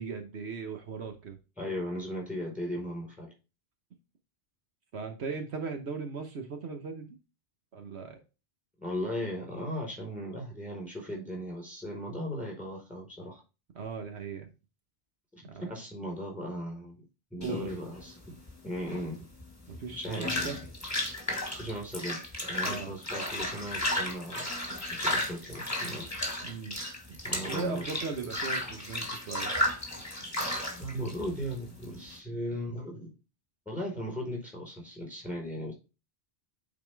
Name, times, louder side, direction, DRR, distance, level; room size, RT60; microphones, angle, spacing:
voice 1, 0.0-1.4 4.9-7.2 7.7-8.2 13.7-14.5 15.4-15.6 17.4-17.7 19.7-20.6 22.6-23.0 26.4-29.5, right 5 dB, 75° right, 5 dB, 1.3 m, -38 dB
voice 2, 1.6-3.3 8.8-13.4 15.4-17.0 17.3-18.3 18.6-19.3 20.0-20.5 21.5-24.5 24.9-26.1 27.2-27.9 30.5-33.1 33.7-35.7, equal, ahead, -2 dB, 4.4 m, -37 dB
sound 1, 17.4-32.2, left 1 dB, 15° left, 1.8 m, -34 dB
9.3 x 4.2 x 3.4 m, 0.30 s
omnidirectional pair, 1.1 m